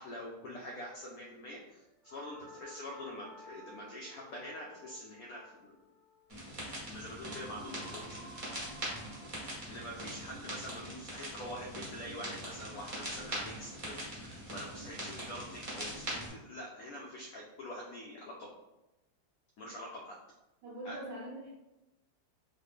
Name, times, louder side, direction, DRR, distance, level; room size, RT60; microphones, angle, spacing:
voice 1, 0.0-1.8 2.1-5.8 6.9-8.3 9.7-18.5 19.6-20.2 20.8-21.0, equal, 80° left, -2 dB, 0.8 m, -45 dB
sound 1, 2.0-12.2, right 1 dB, 60° right, 0.9 m, -55 dB
sound 2, 6.3-16.3, equal, 35° right, 0.5 m, -42 dB
voice 2, 20.6-21.5, right 1 dB, 75° right, -3 dB, 1.3 m, -43 dB
3.1 x 2.1 x 3.5 m, 0.97 s
omnidirectional pair, 2.0 m